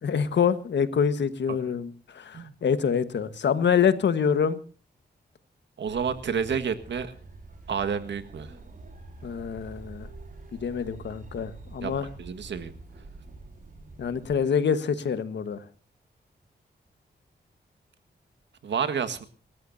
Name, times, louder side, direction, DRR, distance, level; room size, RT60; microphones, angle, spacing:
voice 1, 0.0-4.6 9.2-10.1 10.5-12.1 14.0-15.6, left 7 dB, 90° left, 12 dB, 1.5 m, -26 dB
voice 2, 5.8-7.1 7.7-8.5 11.8-11.9 12.2-12.7 18.6-19.3, right 6 dB, 90° right, 10 dB, 1.7 m, -29 dB
sound 1, 5.9-14.4, right 2 dB, 50° right, 4.9 m, -46 dB
28.0 x 14.0 x 2.7 m, 0.39 s
wide cardioid pair, 120°, 18 cm